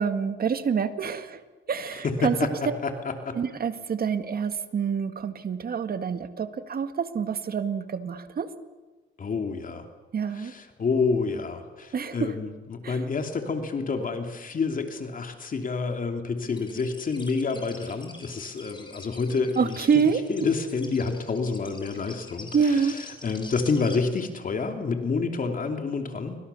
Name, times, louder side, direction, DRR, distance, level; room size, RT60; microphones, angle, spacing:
voice 1, 0.0-1.4 1.7-2.7 3.3-8.5 10.1-10.5 11.9-12.4 12.8-13.0 19.6-20.5 22.5-23.0, right 6 dB, 50° right, 9 dB, 2.0 m, -27 dB
voice 2, 2.0-3.4 9.2-9.8 10.3-20.0 20.3-26.4, left 4 dB, 45° left, 5 dB, 3.0 m, -28 dB
sound 1, 16.5-24.0, left 3 dB, 25° left, 5.8 m, -45 dB
29.0 x 24.5 x 7.1 m, 1.3 s
cardioid pair, 90°, 20 cm